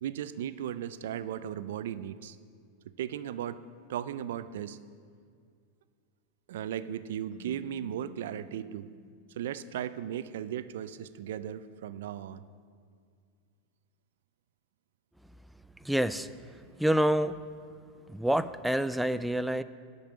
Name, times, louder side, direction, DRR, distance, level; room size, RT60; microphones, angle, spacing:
voice 1, 0.0-2.4 3.0-3.6 3.9-4.8 6.5-8.9 9.4-12.4, right 10 dB, 80° right, 15 dB, 0.4 m, -36 dB
Keyboard (musical), 7.3-10.1, left 3 dB, 35° left, 2.0 m, -53 dB
voice 2, 15.8-16.3 16.8-17.4 18.1-19.6, right 1 dB, 5° right, 13 dB, 0.3 m, -27 dB
11.5 x 5.4 x 8.7 m, 2.2 s
supercardioid pair, 120°, 0 cm